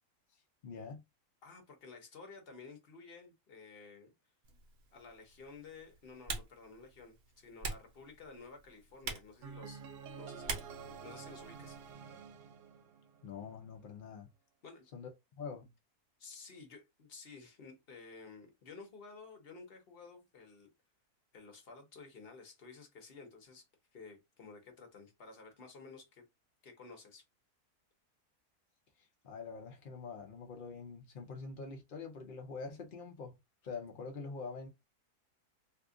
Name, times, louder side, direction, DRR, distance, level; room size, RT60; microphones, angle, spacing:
voice 1, 0.6-1.0 13.2-14.3 14.9-15.1 15.4-15.7 29.0-33.3 33.6-34.7, left 4 dB, 60° left, 0.5 m, -45 dB
voice 2, 1.4-4.1 4.9-9.9 10.2-11.8 14.6-14.9 16.2-20.7 21.3-23.7 23.9-26.2 26.6-27.2, left 4 dB, 45° left, 0.9 m, -53 dB
Typing, 4.4-11.9, right 4 dB, 50° right, 0.9 m, -46 dB
sound 1, 9.4-13.5, right 6 dB, 80° right, 1.1 m, -49 dB
2.8 x 2.4 x 3.6 m
omnidirectional pair, 1.7 m